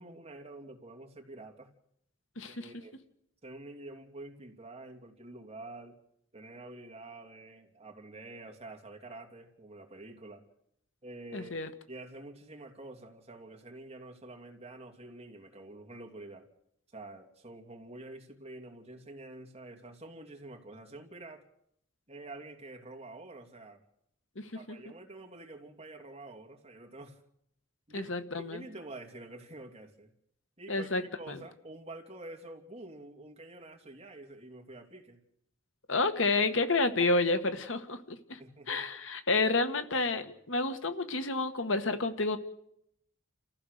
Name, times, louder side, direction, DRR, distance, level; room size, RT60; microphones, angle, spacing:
voice 1, 0.0-1.7 2.5-3.0 3.4-6.0 6.3-10.4 11.0-11.6 11.9-16.5 16.9-21.5 22.1-23.8 24.5-27.2 27.9-30.1 30.6-35.2 38.4-38.8, right 2 dB, 30° right, 3 dB, 2.8 m, -47 dB
voice 2, 2.4-2.7 11.3-11.7 24.3-24.8 27.9-28.6 30.7-31.4 35.9-38.4 38.7-42.4, left 3 dB, 75° left, 9 dB, 1.6 m, -30 dB
29.5 x 15.0 x 6.7 m, 0.75 s
head